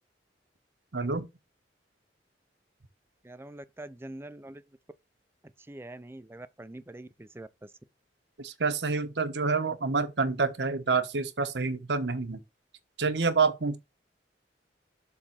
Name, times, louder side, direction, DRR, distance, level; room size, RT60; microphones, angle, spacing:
voice 1, 0.9-1.3 8.4-12.4 13.0-13.8, right 4 dB, 75° right, 1.0 m, -28 dB
voice 2, 3.2-4.6 5.7-7.5, right 1 dB, 15° right, 0.5 m, -44 dB
7.3 x 3.6 x 6.3 m
head